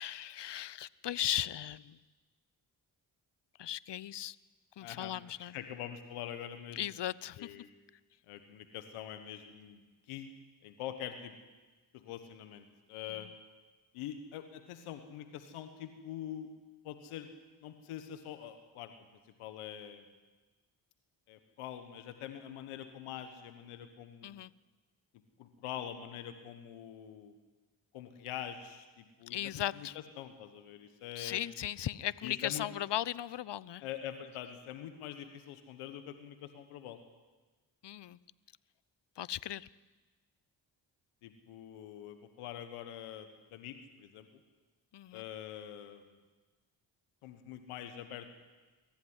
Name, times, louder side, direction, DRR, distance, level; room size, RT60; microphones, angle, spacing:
voice 1, 0.0-2.0 3.6-4.4 4.8-5.5 6.8-7.6 13.1-13.3 24.2-24.5 29.3-30.0 31.1-33.8 37.8-38.2 39.2-39.7 44.9-45.2, left 12 dB, 55° left, 21 dB, 0.9 m, -37 dB
voice 2, 4.8-5.1 5.4-6.8 7.4-7.7 8.3-10.3 10.6-11.3 11.9-13.3 13.9-16.5 16.8-17.3 17.6-18.9 19.4-20.0 21.3-24.3 25.4-27.4 27.9-29.4 29.8-29.9 30.2-31.4 32.2-32.7 33.8-37.0 41.2-44.3 45.1-46.0 47.2-48.3, left 10 dB, 90° left, 9 dB, 1.5 m, -44 dB
23.5 x 14.5 x 9.8 m, 1.3 s
supercardioid pair, 40°, 49 cm